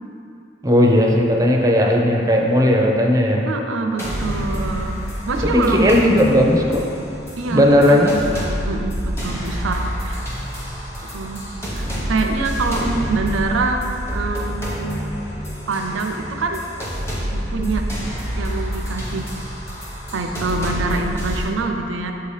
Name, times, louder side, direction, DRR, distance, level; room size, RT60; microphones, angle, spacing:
voice 1, 0.6-3.4 5.5-6.9 7.5-8.1, equal, 20° right, 0 dB, 0.5 m, -16 dB
voice 2, 3.5-5.0 5.3-5.9 7.4-8.0 8.3-10.2 11.1-11.4 11.8-13.9 14.1-15.0 15.7-16.6 17.2-17.9 18.4-19.2 20.1-22.1, right 3 dB, 85° right, 4 dB, 0.5 m, -25 dB
sound 1, 4.0-21.4, equal, 15° left, 0.9 m, -28 dB
7.2 x 2.8 x 4.8 m, 2.6 s
head